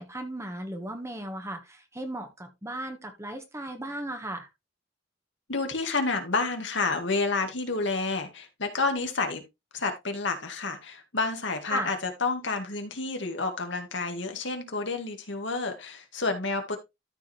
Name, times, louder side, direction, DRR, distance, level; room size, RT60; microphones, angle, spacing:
voice 1, 0.0-4.5 11.7-11.9, right 1 dB, 15° right, 1.5 m, -36 dB
voice 2, 5.5-9.4 9.7-16.8, left 3 dB, 65° left, 2.1 m, -29 dB
13.5 x 5.0 x 3.3 m
head